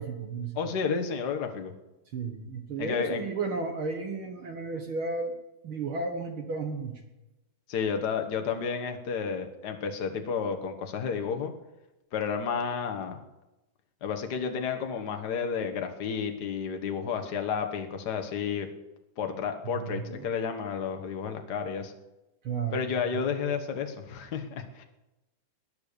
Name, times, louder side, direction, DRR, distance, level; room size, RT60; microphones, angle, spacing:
voice 1, 0.0-0.7 2.1-5.3 5.6-7.0 19.7-20.3 22.4-22.9 23.1-23.2, right 4 dB, 50° right, 4 dB, 1.7 m, -33 dB
voice 2, 0.5-1.7 2.8-3.2 7.7-11.5 12.1-13.2 14.0-18.7 19.2-21.9 22.7-24.8, left 6 dB, 55° left, 5 dB, 1.1 m, -31 dB
20.0 x 10.5 x 6.8 m, 0.99 s
omnidirectional pair, 4.0 m